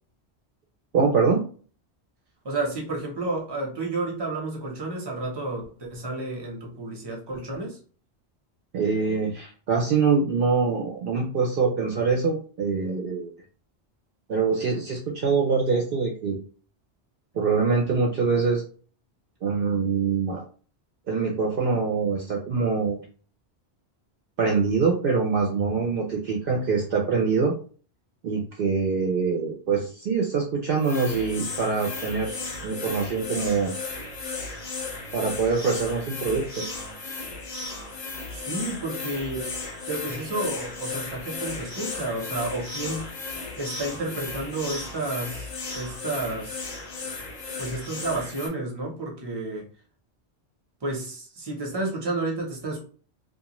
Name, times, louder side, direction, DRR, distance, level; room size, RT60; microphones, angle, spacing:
voice 1, 0.9-1.4 8.7-13.3 14.3-16.4 17.3-18.6 19.4-20.4 21.1-23.0 24.4-27.5 28.2-32.4 32.6-33.7 35.1-36.6, right 5 dB, 60° right, 0.7 m, -24 dB
voice 2, 2.4-7.8 38.3-39.5 39.9-43.1 43.6-46.7 47.6-49.7 50.8-52.8, right 2 dB, 25° right, 0.7 m, -31 dB
sound 1, 30.8-48.5, left 3 dB, 45° left, 0.6 m, -35 dB
2.4 x 2.3 x 2.9 m
omnidirectional pair, 1.1 m